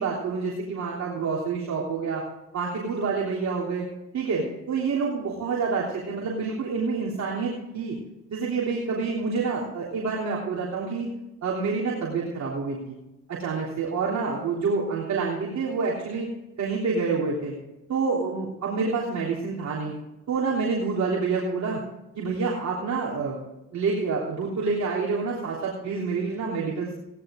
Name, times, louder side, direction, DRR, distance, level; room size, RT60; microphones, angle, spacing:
voice 1, 0.0-2.2 2.5-3.9 4.1-8.0 8.3-11.1 11.4-13.0 13.3-16.3 16.6-17.5 17.9-19.9 20.3-21.8 22.2-23.4 23.7-26.9, right 4 dB, 60° right, -3 dB, 3.5 m, -27 dB
17.5 x 11.0 x 3.8 m, 0.95 s
cardioid pair, 85°, 31 cm